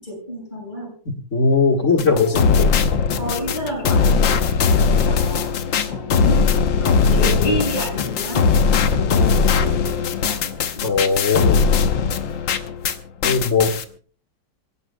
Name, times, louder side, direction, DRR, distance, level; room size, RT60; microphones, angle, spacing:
voice 1, 0.0-0.9 1.8-2.8 3.2-8.5 8.9-11.1, equal, 25° left, 1 dB, 7.0 m, -30 dB
voice 2, 1.3-2.7 8.7-9.0 10.8-11.6 12.0-12.1 13.2-13.7, left 4 dB, 40° left, 4 dB, 1.9 m, -19 dB
sound 1, 2.0-13.0 13.2-13.8, left 5 dB, 85° left, 1.8 m, -19 dB
26.5 x 17.0 x 2.3 m, 0.43 s
omnidirectional pair, 2.0 m